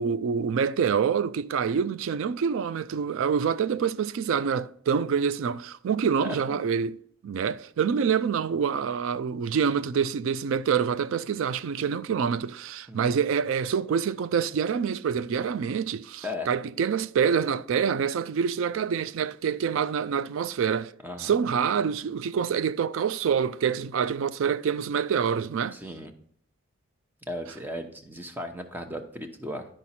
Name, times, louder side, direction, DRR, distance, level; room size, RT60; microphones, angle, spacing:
voice 1, 0.0-7.0 7.2-20.9 21.2-25.8, right 7 dB, 65° right, 0.3 m, -26 dB
voice 2, 6.2-6.6 12.9-13.1 16.2-16.5 21.0-21.3 25.7-26.1 27.3-29.7, left 1 dB, 10° right, 0.8 m, -36 dB
11.0 x 5.0 x 4.2 m
head